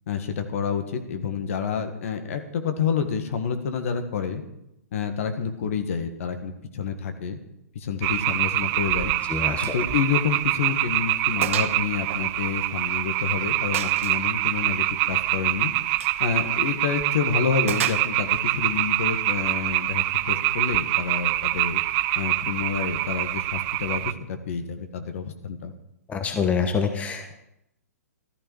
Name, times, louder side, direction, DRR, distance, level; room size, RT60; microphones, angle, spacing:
voice 1, 0.1-4.4 4.9-7.4 7.8-9.1 9.6-15.7 16.2-21.8 22.2-25.7, left 6 dB, 55° left, 7 dB, 1.6 m, -28 dB
sound 1, 8.0-24.1, right 17 dB, 30° right, 0.4 m, -25 dB
voice 2, 9.3-9.7 26.1-27.3, left 5 dB, 15° left, 6 dB, 1.3 m, -26 dB
Gunshot gunfire, 9.6-9.8 10.2-10.3 10.7-10.8 11.4-11.8 12.1-13.1 13.7-14.3 15.9-16.2 17.7-18.4, right 9 dB, 55° right, 1.0 m, -32 dB
14.0 x 12.5 x 4.7 m, 0.82 s
figure-of-eight pair, 120°, 9 cm